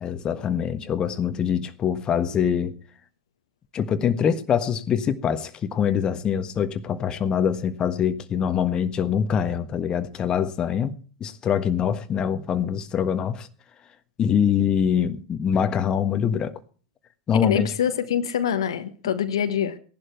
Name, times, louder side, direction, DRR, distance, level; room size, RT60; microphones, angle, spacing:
voice 1, 0.0-2.7 3.7-10.9 11.2-13.5 14.2-16.5 17.3-17.7, left 8 dB, 30° left, 1.4 m, -24 dB
voice 2, 17.4-19.8, left 9 dB, 70° left, 1.3 m, -25 dB
17.5 x 11.5 x 4.5 m
figure-of-eight pair, 85°, 3 cm